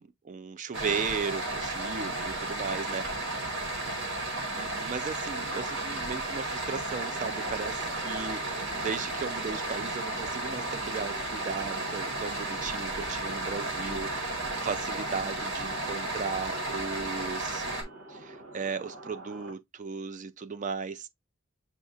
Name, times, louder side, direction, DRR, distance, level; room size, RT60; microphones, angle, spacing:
voice 1, 0.0-3.1 4.5-17.6 18.1-21.1, right 5 dB, 40° right, 0.4 m, -36 dB
sound 1, 0.7-17.8, right 2 dB, 65° right, 1.6 m, -33 dB
sound 2, 6.9-19.5, right 2 dB, 90° right, 1.1 m, -48 dB
7.0 x 2.8 x 2.4 m
head